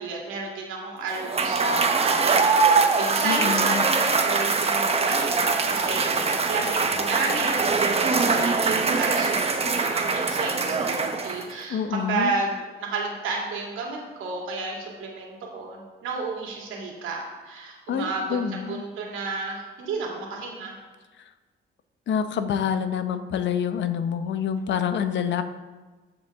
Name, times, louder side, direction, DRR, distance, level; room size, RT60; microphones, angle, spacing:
voice 1, 0.0-20.8, right 3 dB, 90° right, -1 dB, 2.3 m, -32 dB
Cheering / Applause / Crowd, 1.1-11.6, right 4 dB, 30° right, 0.9 m, -23 dB
voice 2, 3.2-3.8 11.7-12.3 17.9-18.8 22.1-25.4, left 7 dB, 65° left, 10 dB, 0.7 m, -27 dB
14.5 x 5.3 x 3.5 m, 1.3 s
cardioid pair, 90°, 20 cm